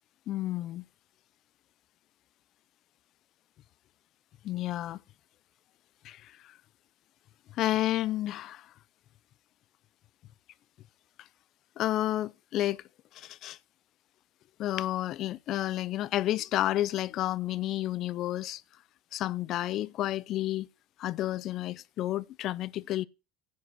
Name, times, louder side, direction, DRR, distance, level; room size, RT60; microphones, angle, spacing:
voice 1, 0.3-0.8 4.4-5.0 6.0-6.3 7.5-8.7 11.8-12.8 13.1-13.6 14.6-18.6 19.1-20.7 21.0-23.0, left 14 dB, 55° left, 0.5 m, -31 dB
10.5 x 5.0 x 7.9 m
supercardioid pair, 100°, 0 cm